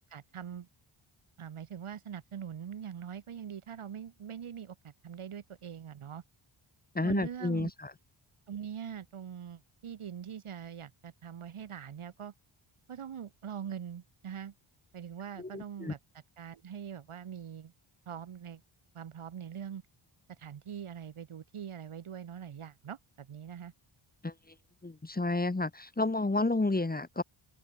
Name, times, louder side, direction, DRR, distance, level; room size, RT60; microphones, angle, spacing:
voice 1, 0.1-0.7 1.4-6.2 7.0-7.7 8.5-12.3 12.9-14.5 14.9-16.0 16.4-17.7 18.1-18.6 18.9-19.8 20.3-23.7, right 8 dB, 80° right, 7.3 m, -43 dB
voice 2, 6.9-7.9 15.4-15.9 24.2-24.3 24.8-27.2, left 2 dB, 20° left, 2.6 m, -31 dB
open air
wide cardioid pair, 130°, 49 cm